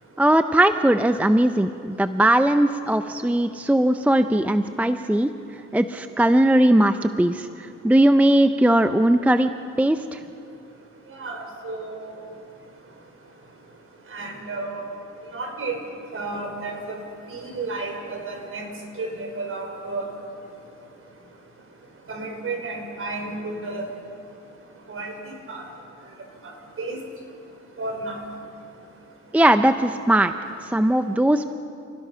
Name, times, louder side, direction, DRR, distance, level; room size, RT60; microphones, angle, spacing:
voice 1, 0.2-5.3 5.7-9.5 9.8-10.2 29.3-30.3 30.6-31.5, right 1 dB, 5° right, 9 dB, 0.6 m, -19 dB
voice 2, 11.1-12.1 14.1-14.8 15.3-15.7 16.1-17.0 17.3-18.7 19.0-20.1 22.1-23.8 24.9-25.1 25.5-25.6 26.8-27.0 27.8-28.2, right 3 dB, 45° right, 2 dB, 5.3 m, -32 dB
29.5 x 18.0 x 5.7 m, 2.6 s
cardioid pair, 90°, 30 cm